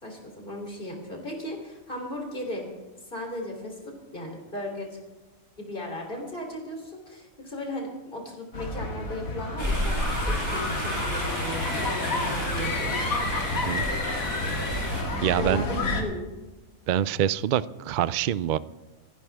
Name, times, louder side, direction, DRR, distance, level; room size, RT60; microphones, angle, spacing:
voice 1, 0.0-2.7 3.1-5.0 5.6-13.0 15.3-16.2, left 1 dB, 40° left, 1 dB, 3.6 m, -36 dB
sound 1, 8.5-16.0, left 2 dB, 80° left, 2.3 m, -30 dB
sound 2, 9.6-15.0, equal, 30° right, 4.7 m, -32 dB
voice 2, 15.2-15.6 16.9-18.6, right 10 dB, 85° right, 17 dB, 0.4 m, -25 dB
27.0 x 10.5 x 3.5 m, 1.2 s
omnidirectional pair, 1.4 m